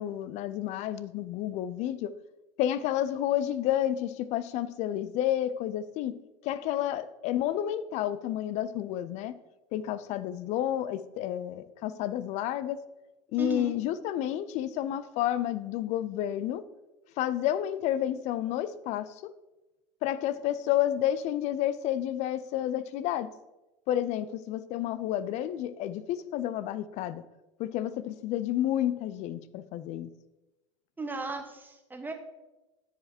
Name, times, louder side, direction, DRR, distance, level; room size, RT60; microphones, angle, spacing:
voice 1, 0.0-2.1 2.6-6.1 6.4-9.3 9.7-12.8 13.3-16.6 17.2-19.3 20.0-23.3 23.9-27.2 27.6-30.1, left 12 dB, 45° left, 15 dB, 0.5 m, -30 dB
voice 2, 13.4-13.7 31.0-32.1, right 3 dB, 10° right, 4 dB, 1.3 m, -36 dB
13.0 x 4.9 x 2.9 m, 1.0 s
figure-of-eight pair, 75°, 16 cm